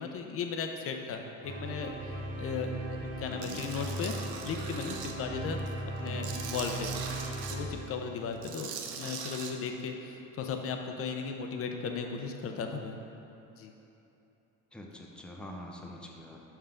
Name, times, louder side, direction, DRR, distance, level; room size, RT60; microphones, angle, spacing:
voice 1, 0.0-1.9 2.4-4.2 4.4-6.9 7.5-13.0 13.6-13.7, left 5 dB, 45° left, 4 dB, 0.6 m, -36 dB
sound 1, 1.4-8.5, right 2 dB, 50° right, 0.9 m, -38 dB
voice 2, 3.3-3.7 5.9-6.3 14.7-16.4, left 1 dB, 5° left, 0 dB, 0.6 m, -46 dB
Tools, 3.4-5.1 5.6-7.6 8.3-9.5, right 7 dB, 90° right, 0.7 m, -41 dB
5.7 x 5.6 x 3.7 m, 3.0 s
cardioid pair, 110°, 33 cm